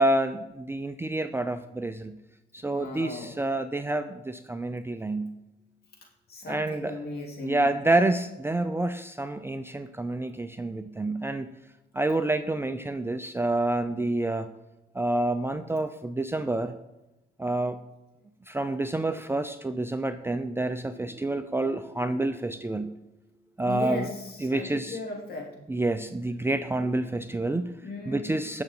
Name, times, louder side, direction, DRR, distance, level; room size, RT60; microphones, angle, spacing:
voice 1, 0.0-2.1 2.5-5.3 6.5-7.0 7.4-11.5 11.9-14.5 14.9-16.7 17.4-17.8 18.5-23.0 23.6-24.1 24.4-25.0 25.7-27.7 28.1-28.6, right 2 dB, 10° right, 9 dB, 0.5 m, -28 dB
voice 2, 2.6-3.4 6.3-7.7 23.6-25.5 27.8-28.3, left 2 dB, 50° left, 0 dB, 3.3 m, -37 dB
17.5 x 6.8 x 3.9 m, 0.96 s
cardioid pair, 90°, 20 cm